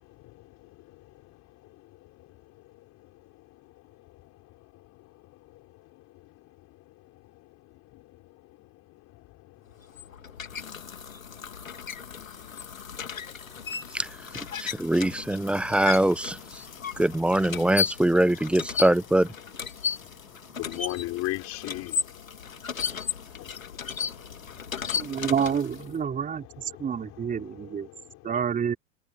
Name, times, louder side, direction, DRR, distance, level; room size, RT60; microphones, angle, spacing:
voice 1, 0.2-2.3 2.6-2.7 3.0-3.1 3.5-3.6 4.0-6.3 7.9-8.7 9.1-9.6 9.8-10.1 10.6-10.7 11.3-11.5 12.1-14.0 16.7-17.0 19.7-25.2 26.0-28.2, left 18 dB, 40° left, 4.5 m, -42 dB
sound 1, 9.7-25.9, left 6 dB, 90° left, 2.3 m, -35 dB
voice 2, 14.6-16.4 17.0-19.3, right 1 dB, 5° right, 0.6 m, -23 dB
voice 3, 24.9-27.9 28.2-28.8, right 7 dB, 20° right, 4.3 m, -28 dB
hypercardioid pair, 100°, 39 cm